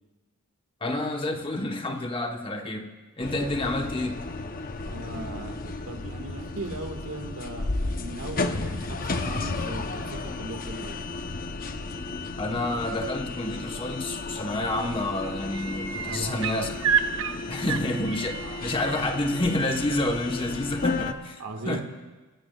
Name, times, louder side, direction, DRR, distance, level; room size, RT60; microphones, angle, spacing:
voice 1, 0.8-4.2 12.4-16.8 17.5-18.4 18.6-21.8, left 1 dB, 25° left, 4 dB, 1.1 m, -29 dB
sound 1, 3.2-21.1, left 3 dB, 40° left, 0.7 m, -33 dB
voice 2, 4.8-11.0 14.9-15.1 16.1-16.7 17.7-18.1 18.4-18.6 21.4-21.8, right 2 dB, 80° right, 4 dB, 1.7 m, -38 dB
sound 2, 14.3-14.7 15.0-19.0 20.7-20.8, right 7 dB, 60° right, 0.8 m, -30 dB
26.0 x 16.0 x 2.3 m, 1.3 s
head